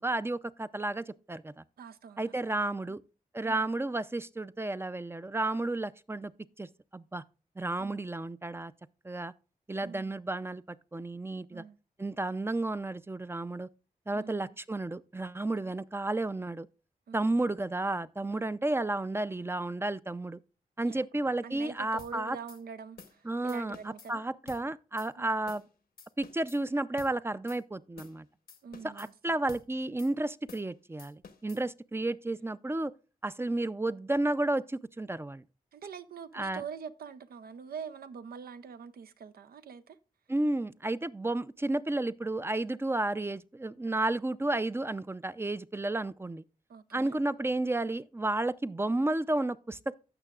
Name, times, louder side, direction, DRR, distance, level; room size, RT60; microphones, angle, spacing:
voice 1, 0.0-1.6 2.2-3.0 3.3-6.3 6.6-7.2 7.6-8.7 9.0-9.3 9.7-10.6 10.9-11.6 12.0-13.7 14.1-16.7 17.1-20.4 20.8-22.4 23.2-25.6 26.2-28.3 28.8-32.9 33.2-35.4 36.3-36.6 40.3-46.4 46.9-49.9, right 2 dB, 15° right, 0.4 m, -32 dB
voice 2, 1.8-2.6 3.4-3.7 7.8-8.0 9.8-10.1 11.5-11.8 14.1-14.6 15.6-15.8 17.1-17.3 18.3-18.5 20.8-21.0 21.4-24.3 25.2-25.3 28.6-29.4 35.7-40.0 46.7-47.2, right 6 dB, 80° right, 0.6 m, -45 dB
sound 1, 22.0-22.1 22.5-22.6 23.0-23.2 23.5-24.1 24.5-24.6 25.0-25.1 25.5-25.7 26.0-26.6 27.0-27.1 27.5-27.6 28.0-28.2 28.5-29.1 29.5-29.7 30.0-30.1 30.5-30.7 31.0-31.6, left 6 dB, 80° left, 1.0 m, -51 dB
15.5 x 5.9 x 2.4 m
cardioid pair, 50°, 15 cm